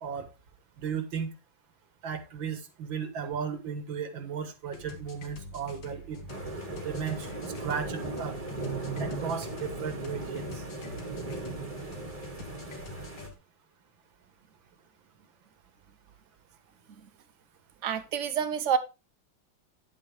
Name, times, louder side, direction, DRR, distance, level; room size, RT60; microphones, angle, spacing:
voice 1, 0.8-1.3 2.0-6.2 6.8-8.4 9.0-10.6, right 7 dB, 85° right, 2.2 m, -35 dB
sound 1, 4.7-13.3, left 3 dB, 80° left, 2.3 m, -45 dB
sound 2, 6.3-13.3, right 3 dB, 20° right, 1.6 m, -37 dB
voice 2, 17.8-18.8, right 8 dB, 50° right, 1.0 m, -27 dB
10.0 x 7.5 x 3.4 m
omnidirectional pair, 2.1 m